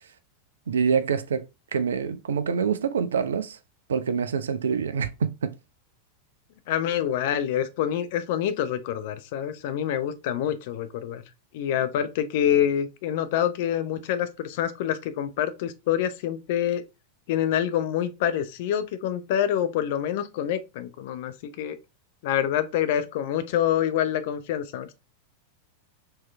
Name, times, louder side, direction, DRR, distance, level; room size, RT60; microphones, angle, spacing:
voice 1, 0.7-1.4 1.7-3.6 3.9-5.5 11.8-11.9, right 6 dB, 65° right, 0.5 m, -26 dB
voice 2, 6.7-11.2 11.5-16.8 17.3-21.8 22.2-24.9, left 10 dB, 50° left, 0.6 m, -26 dB
4.5 x 3.0 x 3.3 m
figure-of-eight pair, 90°, 0 cm